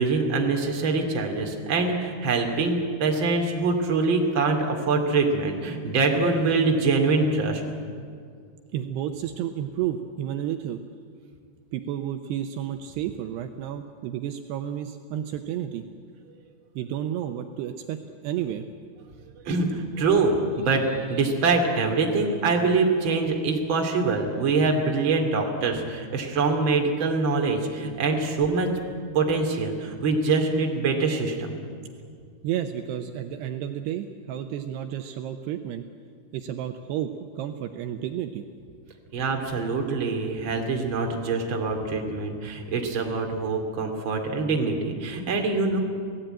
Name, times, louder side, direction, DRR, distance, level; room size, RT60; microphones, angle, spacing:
voice 1, 0.0-7.6 19.4-28.7 29.1-31.5 39.1-45.8, right 3 dB, 35° right, 2 dB, 2.7 m, -24 dB
voice 2, 8.7-10.8 11.7-15.8 16.8-18.7 32.4-35.8 36.3-38.4, right 10 dB, 75° right, 7 dB, 2.8 m, -31 dB
28.0 x 18.0 x 9.0 m, 2.2 s
omnidirectional pair, 5.1 m